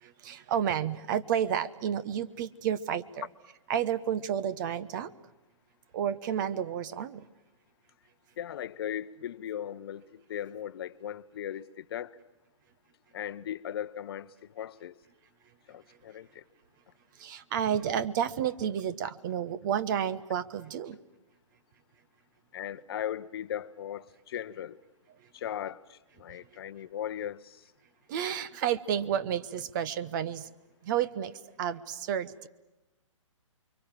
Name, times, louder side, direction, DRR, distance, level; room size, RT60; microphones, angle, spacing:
voice 1, 0.0-3.3 3.7-5.1 5.9-7.2 17.2-21.0 28.1-30.5 30.8-32.5, right 9 dB, 35° right, 1.0 m, -31 dB
voice 2, 8.4-12.2 13.1-15.0 15.7-16.4 22.5-24.8 25.3-27.6, left 10 dB, 45° left, 0.9 m, -38 dB
29.5 x 23.5 x 7.5 m
hypercardioid pair, 140°, 17 cm